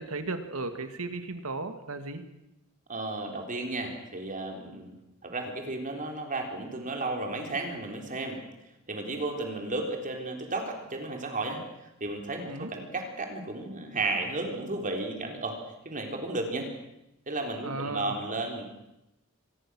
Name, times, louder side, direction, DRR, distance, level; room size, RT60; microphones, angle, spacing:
voice 1, 0.0-2.2 12.5-12.7 17.6-18.2, right 3 dB, 75° right, 8 dB, 2.3 m, -35 dB
voice 2, 2.9-8.4 8.9-11.6 12.0-15.6 15.9-16.7 17.3-18.6, right 2 dB, 40° right, 3 dB, 3.8 m, -33 dB
25.0 x 20.0 x 6.4 m, 0.89 s
head